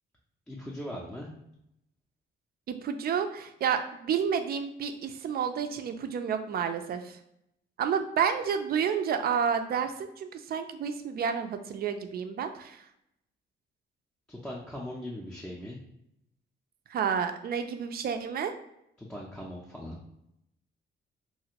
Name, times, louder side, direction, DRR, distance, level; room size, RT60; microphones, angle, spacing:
voice 1, 0.5-1.3 14.3-15.8 19.0-20.0, left 1 dB, 5° left, -5 dB, 0.5 m, -39 dB
voice 2, 2.7-7.2 7.8-12.8 16.9-18.5, right 7 dB, 50° right, 8 dB, 0.4 m, -30 dB
2.8 x 2.5 x 2.8 m, 0.80 s
cardioid pair, 90°, 20 cm